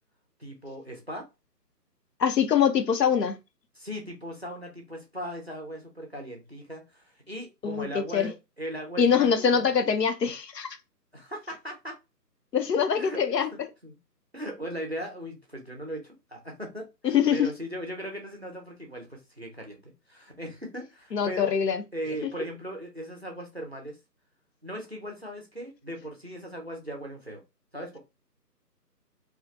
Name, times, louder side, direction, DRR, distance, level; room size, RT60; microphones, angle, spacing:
voice 1, 0.4-1.3 3.7-9.7 11.1-12.0 13.0-13.2 13.5-14.0 14.3-21.5 21.9-24.0 24.6-27.4 27.7-28.0, equal, 45° right, 0.4 m, -38 dB
voice 2, 2.2-3.4 7.6-8.3 9.0-10.7 12.5-13.5 17.0-17.5 21.1-21.8 22.2-22.3, left 7 dB, 75° left, 0.6 m, -24 dB
2.4 x 2.1 x 2.4 m
figure-of-eight pair, 155°, 49 cm